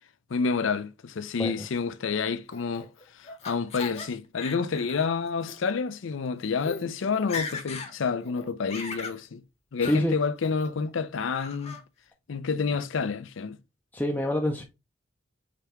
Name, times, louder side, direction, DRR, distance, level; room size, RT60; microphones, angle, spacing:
voice 1, 0.3-2.9 3.2-9.4 9.7-11.8 12.3-13.6, left 5 dB, 70° left, 0.5 m, -29 dB
Laughter, 2.5-4.1 4.4-5.0 5.4-5.6 6.3-6.4 6.6-6.8 7.1-7.9 8.3-9.2 9.8-10.0 10.4-10.9 11.3-11.8, left 4 dB, 35° left, 0.9 m, -38 dB
voice 2, 9.8-10.2 13.9-14.6, left 1 dB, 10° left, 0.5 m, -27 dB
5.2 x 3.4 x 3.0 m
head